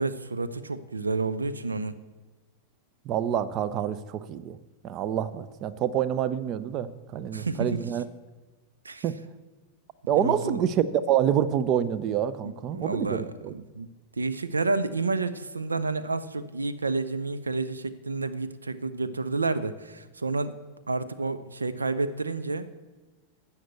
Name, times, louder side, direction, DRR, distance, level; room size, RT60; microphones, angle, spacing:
voice 1, 0.0-1.9 7.3-8.0 8.8-9.0 10.1-10.6 12.4-13.9 14.2-20.5 20.9-22.7, right 3 dB, 75° right, 13 dB, 0.6 m, -30 dB
voice 2, 3.1-4.6 4.8-8.0 9.0-9.2 10.1-13.5, right 9 dB, 35° right, 16 dB, 0.6 m, -27 dB
12.5 x 7.2 x 7.9 m, 1.2 s
figure-of-eight pair, 90°, 0 cm